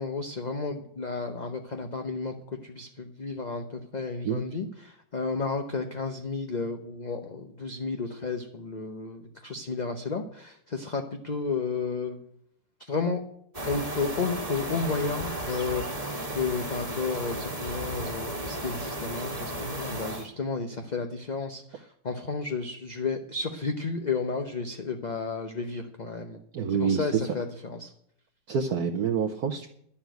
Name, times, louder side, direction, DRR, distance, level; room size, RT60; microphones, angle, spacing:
voice 1, 0.0-2.3 2.6-12.2 12.9-13.2 13.7-15.8 16.3-26.4 26.7-27.9, left 4 dB, 35° left, 5 dB, 0.7 m, -32 dB
sound 1, 13.5-20.3, right 1 dB, 20° right, 1.6 m, -34 dB
voice 2, 26.5-27.3 28.5-29.7, right 6 dB, 60° right, 5 dB, 1.3 m, -27 dB
11.5 x 7.1 x 9.1 m, 0.69 s
omnidirectional pair, 1.9 m